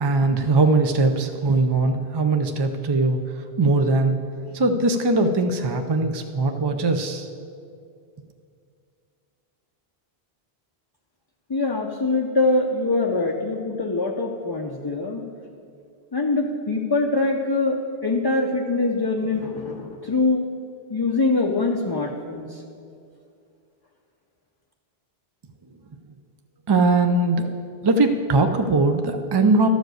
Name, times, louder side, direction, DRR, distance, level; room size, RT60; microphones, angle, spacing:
voice 1, 0.0-4.1 4.5-7.3 26.7-27.5 27.8-29.7, right 3 dB, 40° right, 6 dB, 0.3 m, -20 dB
voice 2, 11.5-15.2 16.1-20.4 20.9-22.6, left 3 dB, 30° left, 1 dB, 0.5 m, -23 dB
12.5 x 5.1 x 7.8 m, 2.4 s
omnidirectional pair, 1.1 m